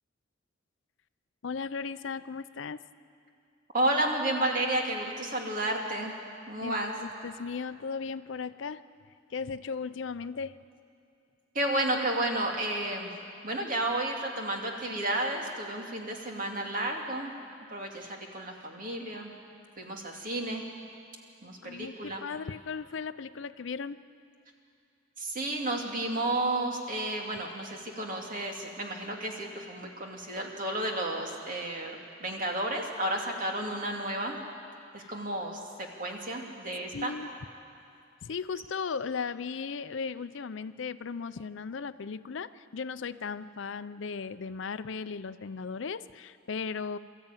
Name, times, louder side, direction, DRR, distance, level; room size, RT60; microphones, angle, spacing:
voice 1, 1.4-2.8 6.6-8.8 9.3-10.6 21.6-24.0 35.0-35.1 36.9-37.3 38.2-47.0, left 5 dB, 70° left, 14 dB, 0.5 m, -36 dB
voice 2, 3.7-6.1 6.5-6.9 11.5-13.1 13.4-17.3 17.7-19.3 19.8-20.6 21.4-22.2 25.2-34.4 34.9-37.1, right 1 dB, 45° right, 1 dB, 2.4 m, -32 dB
23.0 x 13.5 x 9.0 m, 2.4 s
head